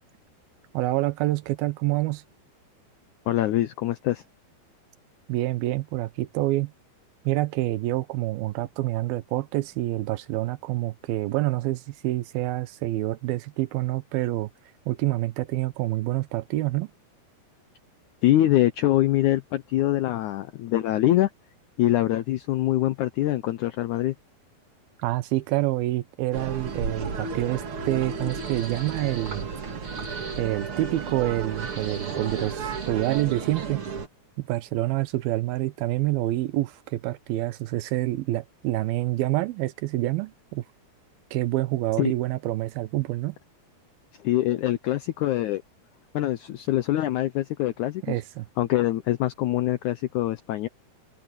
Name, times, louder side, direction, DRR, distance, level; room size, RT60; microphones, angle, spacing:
voice 1, 0.7-2.2 5.3-6.7 7.3-14.5 14.9-16.9 25.0-29.5 30.4-33.8 34.4-40.6 41.3-43.4 48.0-48.5, right 17 dB, 80° right, 2.7 m, -27 dB
voice 2, 3.3-4.2 18.2-21.3 21.8-24.2 42.0-42.1 44.2-45.6 46.1-48.2 48.6-50.7, left 14 dB, 85° left, 1.7 m, -24 dB
sound 1, 26.3-34.1, right 5 dB, 40° right, 2.5 m, -33 dB
sound 2, 28.3-29.5 29.8-30.4 31.5-33.4, right 3 dB, 20° right, 2.2 m, -44 dB
omnidirectional pair, 4.3 m